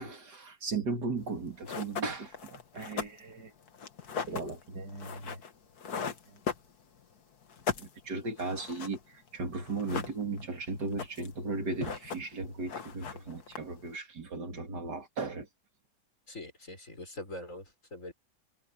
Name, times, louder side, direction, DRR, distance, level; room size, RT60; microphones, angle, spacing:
voice 1, 0.0-3.5 4.3-5.4 6.3-6.4 7.8-15.5, right 3 dB, 70° right, 3.1 m, -36 dB
sound 1, 1.3-1.4 1.6-7.1 7.4-9.0 9.3-9.4 9.6-10.5 10.8-11.4 11.7-12.4 12.7-13.9, left 6 dB, 65° left, 2.1 m, -38 dB
voice 2, 16.3-18.1, left 1 dB, 45° left, 6.2 m, -43 dB
omnidirectional pair, 1.8 m